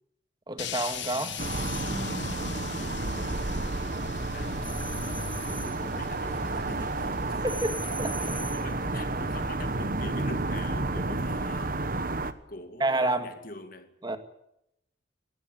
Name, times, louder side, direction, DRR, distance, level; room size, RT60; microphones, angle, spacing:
voice 1, 0.5-1.4 7.4-8.4 12.8-13.3 14.0-14.2, right 2 dB, 25° right, 1.9 m, -29 dB
sound 1, 0.6-10.8, left 6 dB, 70° left, 0.9 m, -41 dB
sound 2, 0.8-2.0 4.6-5.8 7.5-8.7, left 3 dB, 10° left, 1.6 m, -42 dB
sound 3, 1.4-12.3, right 2 dB, 45° right, 1.2 m, -31 dB
voice 2, 3.0-7.5 8.2-11.9 12.5-13.9, left 2 dB, 45° left, 2.3 m, -45 dB
20.0 x 18.5 x 9.4 m
head